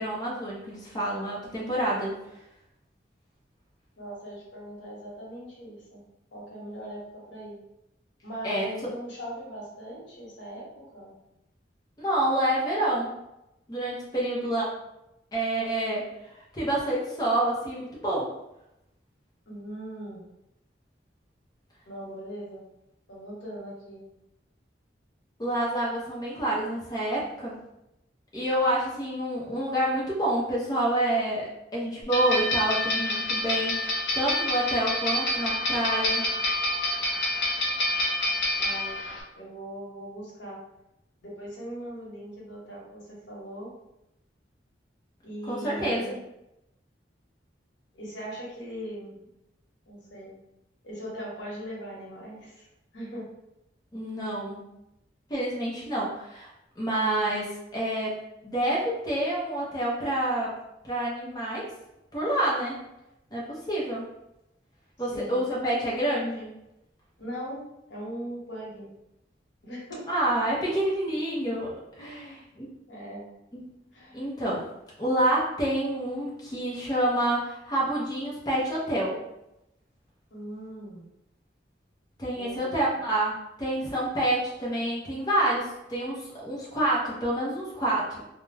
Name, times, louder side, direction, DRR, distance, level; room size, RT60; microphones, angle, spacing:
voice 1, 0.0-2.2 8.4-8.7 12.0-13.1 13.7-14.7 15.3-16.0 16.5-18.3 25.4-27.6 28.3-36.2 45.5-46.1 53.9-54.6 55.3-56.5 56.8-58.1 58.4-60.5 60.8-61.7 62.1-62.8 63.3-64.0 65.0-66.5 70.1-72.7 73.5-73.6 74.1-74.7 75.0-79.2 82.2-88.2, right 1 dB, 20° left, -5 dB, 0.6 m, -28 dB
voice 2, 4.0-6.0 6.3-7.6 8.2-11.1 19.5-20.2 21.9-22.6 23.1-24.0 38.6-39.0 39.4-40.6 41.2-43.7 45.2-46.2 47.9-49.3 49.9-50.3 50.8-52.7 52.9-53.2 65.1-65.5 67.2-68.9 69.6-70.0 72.0-72.4 72.9-73.3 73.9-74.2 80.3-81.0 82.3-82.8, equal, 90° left, -4 dB, 0.9 m, -40 dB
sound 1, 32.1-39.2, left 1 dB, 65° left, 0.5 m, -27 dB
2.3 x 2.0 x 3.2 m, 0.87 s
head